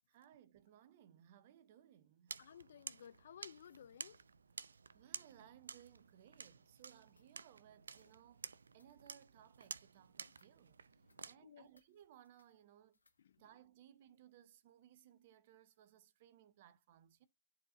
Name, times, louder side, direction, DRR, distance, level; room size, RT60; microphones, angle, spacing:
voice 1, 0.1-2.4 4.6-10.9 11.2-13.0 13.4-17.3, right 10 dB, 45° right, 0.9 m, -63 dB
sound 1, 2.3-11.4, right 5 dB, 75° right, 0.5 m, -52 dB
voice 2, 2.4-4.2 11.0-11.7 13.2-13.5, left 9 dB, 60° left, 0.6 m, -58 dB
sound 2, 5.9-13.4, left 3 dB, 90° left, 2.1 m, -81 dB
12.5 x 4.4 x 2.7 m
figure-of-eight pair, 125°, 0 cm